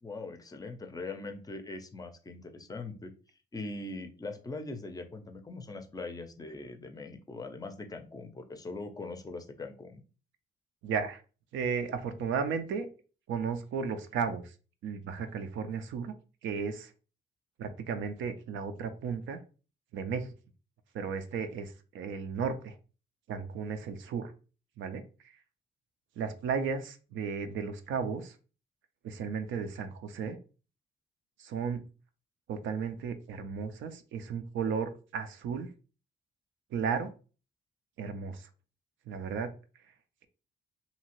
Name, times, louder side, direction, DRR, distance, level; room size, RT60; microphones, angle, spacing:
voice 1, 0.0-3.1 3.5-10.0, left 3 dB, 20° left, 7 dB, 0.5 m, -41 dB
voice 2, 10.8-11.2 11.5-12.9 13.3-14.5 14.8-16.1 16.4-16.9 17.6-19.4 19.9-20.3 20.9-22.8 23.3-24.3 24.8-25.4 26.2-28.4 29.0-30.4 31.4-31.9 32.5-35.7 36.7-37.1 38.0-38.5 39.1-39.5, right 6 dB, 75° right, 9 dB, 0.5 m, -34 dB
2.8 x 2.4 x 2.9 m, 0.36 s
cardioid pair, 90°, 20 cm